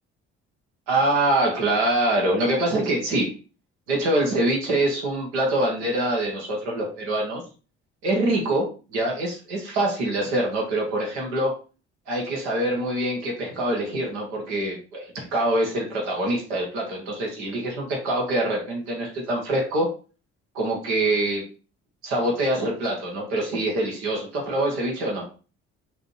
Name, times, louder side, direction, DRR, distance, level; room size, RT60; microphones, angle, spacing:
voice 1, 0.9-3.3 3.9-7.4 8.0-11.5 12.1-19.9 20.5-21.4 22.0-25.2, right 1 dB, 85° right, 0 dB, 1.5 m, -24 dB
5.9 x 3.3 x 4.9 m, 0.35 s
hypercardioid pair, 50°, 33 cm